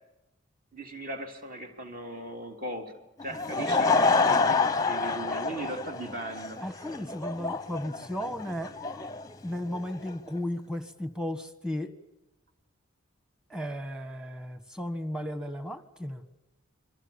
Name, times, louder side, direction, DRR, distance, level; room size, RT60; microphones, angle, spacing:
voice 1, 0.7-2.9 3.2-6.6, right 1 dB, 40° right, 4 dB, 3.4 m, -38 dB
Laughter / Crowd, 3.2-10.1, left 4 dB, 15° left, 0.9 m, -28 dB
voice 2, 6.6-8.7 9.4-11.9 13.5-16.2, left 1 dB, 5° right, 9 dB, 1.6 m, -35 dB
30.0 x 23.5 x 7.2 m, 0.96 s
head